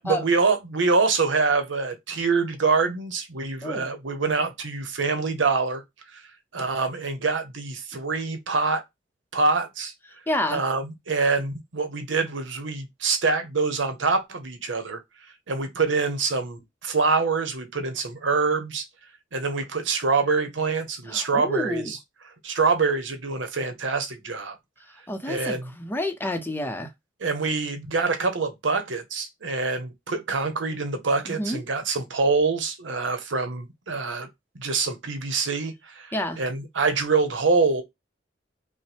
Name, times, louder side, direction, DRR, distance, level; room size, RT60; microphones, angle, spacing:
voice 1, 0.0-5.8 6.1-6.2 6.5-8.8 9.3-9.9 10.5-15.0 15.5-18.8 19.3-22.0 22.4-24.5 25.3-25.7 27.2-34.3 34.6-37.8, right 4 dB, 90° right, 0.9 m, -25 dB
voice 2, 10.3-10.6 21.1-21.9 25.1-26.9 31.3-31.6 36.1-36.4, left 1 dB, 10° left, 0.6 m, -29 dB
5.3 x 2.1 x 3.3 m
head